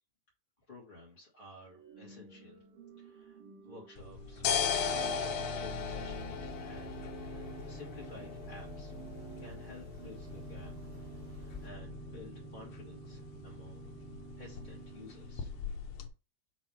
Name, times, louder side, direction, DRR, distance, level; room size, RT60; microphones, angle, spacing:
voice 1, 0.7-2.6 3.0-4.4 4.8-8.9 9.4-10.8 11.3-13.9 14.4-15.5, left 2 dB, 20° left, -5 dB, 1.5 m, -53 dB
Organ / Church bell, 1.6-15.8, right 8 dB, 65° right, 1.4 m, -51 dB
sound 1, 4.0-16.1, left 6 dB, 75° left, 1.9 m, -39 dB
sound 2, 5.7-11.7, left 4 dB, 15° right, 1.8 m, -54 dB
6.2 x 3.1 x 5.5 m, 0.31 s
omnidirectional pair, 3.3 m